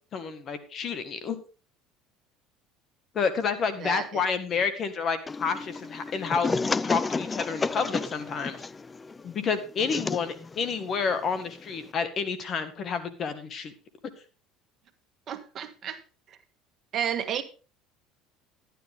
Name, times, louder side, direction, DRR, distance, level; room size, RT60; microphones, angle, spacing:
voice 1, 0.1-1.4 3.1-8.6 9.2-13.7, left 5 dB, 45° left, 1.9 m, -29 dB
voice 2, 3.8-4.2 15.3-16.0 16.3-16.4 16.9-17.4, right 9 dB, 45° right, 1.6 m, -32 dB
sound 1, 5.3-11.9, left 4 dB, 20° left, 0.4 m, -32 dB
12.0 x 10.0 x 3.7 m
supercardioid pair, 90°, 0 cm